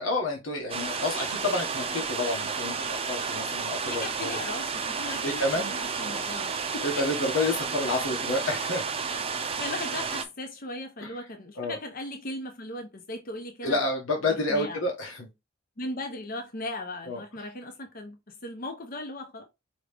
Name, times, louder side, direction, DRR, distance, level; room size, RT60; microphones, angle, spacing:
voice 1, 0.0-4.3 5.2-5.7 6.0-6.2 6.8-8.8 11.0-11.1 11.6-11.8 13.6-15.3 17.1-17.2, left 2 dB, 80° left, 1.3 m, -29 dB
sound 1, 0.7-10.2, right 5 dB, 30° right, 0.6 m, -31 dB
voice 2, 3.9-7.1 9.6-13.8 14.2-14.9 15.8-19.4, left 2 dB, 45° left, 0.8 m, -37 dB
5.0 x 3.1 x 3.5 m
head